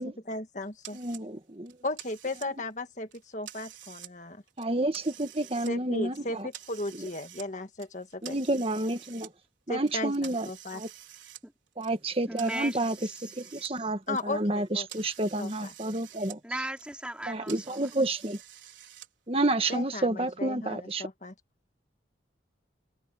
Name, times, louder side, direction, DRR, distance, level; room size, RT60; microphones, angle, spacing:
voice 1, 0.3-1.0 1.8-4.4 5.6-8.6 9.7-10.8 14.1-14.9 15.4-15.7 19.7-21.3, left 2 dB, 40° left, 1.7 m, -36 dB
sound 1, 0.8-1.2 1.7-2.7 3.1-4.1 4.5-5.7 6.1-7.5 7.8-9.3 9.8-13.7 14.0-16.4 16.7-19.1, right 12 dB, 75° right, 4.8 m, -49 dB
voice 2, 0.9-1.7 4.6-6.1 8.2-9.3 9.7-10.4 10.7-10.9 11.8-12.9 13.5-16.4 17.3-18.4 19.3-21.0, right 2 dB, 30° right, 1.5 m, -29 dB
voice 3, 12.3-13.9 16.4-17.9, right 1 dB, 5° right, 4.7 m, -38 dB
open air
head